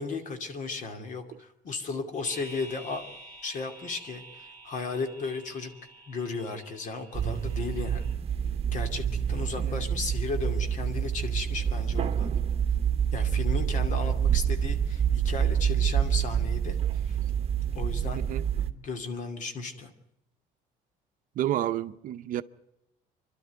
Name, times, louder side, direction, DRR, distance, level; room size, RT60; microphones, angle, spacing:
voice 1, 0.0-3.0 3.4-5.7 6.1-8.1 8.7-12.3 13.1-16.8 17.0-17.2 17.7-19.9, left 4 dB, 55° left, 2.6 m, -35 dB
sound 1, 2.2-8.1, right 1 dB, 15° left, 3.2 m, -49 dB
sound 2, 7.1-18.7, right 8 dB, 40° right, 1.1 m, -27 dB
voice 2, 21.4-22.4, right 12 dB, 60° right, 0.7 m, -30 dB
26.5 x 12.0 x 9.3 m
cardioid pair, 135°, 16 cm